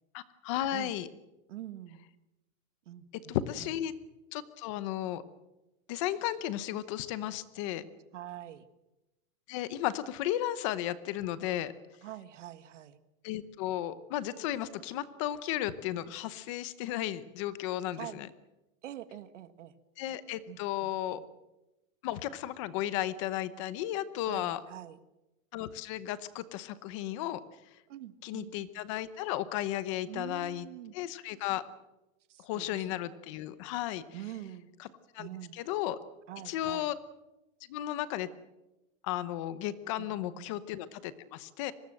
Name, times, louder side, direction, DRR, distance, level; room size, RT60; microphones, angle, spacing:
voice 1, 0.1-1.1 3.3-3.9 4.3-5.2 5.9-7.8 9.5-11.7 13.2-18.3 20.0-21.2 22.0-24.6 25.5-27.4 28.2-30.7 30.9-31.6 32.4-34.0 34.8-34.9 35.1-35.3 35.5-36.0 36.5-36.9 37.7-38.3 39.0-41.7, left 13 dB, 25° left, 15 dB, 0.9 m, -34 dB
voice 2, 1.5-2.1 2.9-3.7 8.1-8.7 12.0-13.0 18.0-18.2 18.8-19.7 20.5-20.9 21.2-21.3 24.3-25.0 27.9-28.5 30.1-30.9 32.3-33.0 34.1-34.7 35.2-35.6 36.3-36.9 40.0-40.5, right 13 dB, 60° right, 12 dB, 1.8 m, -45 dB
24.5 x 19.5 x 7.7 m, 1.0 s
supercardioid pair, 180°, 40 cm